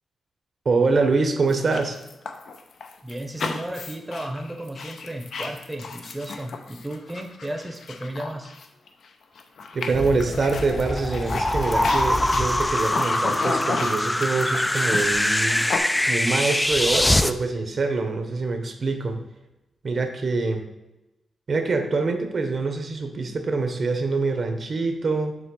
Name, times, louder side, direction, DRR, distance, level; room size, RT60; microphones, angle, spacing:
voice 1, 0.6-2.0 9.7-15.6 16.1-19.2 19.8-20.6 21.5-25.4, right 3 dB, 45° right, 6 dB, 1.0 m, -25 dB
sound 1, 1.5-9.1 9.4-15.8, left 4 dB, 70° left, 0.7 m, -34 dB
voice 2, 3.0-8.5, right 1 dB, 10° right, 2 dB, 0.8 m, -34 dB
sound 2, 9.9-17.3, left 1 dB, 10° left, 0.4 m, -23 dB
7.2 x 3.2 x 6.2 m, 0.97 s
wide cardioid pair, 120°, 0 cm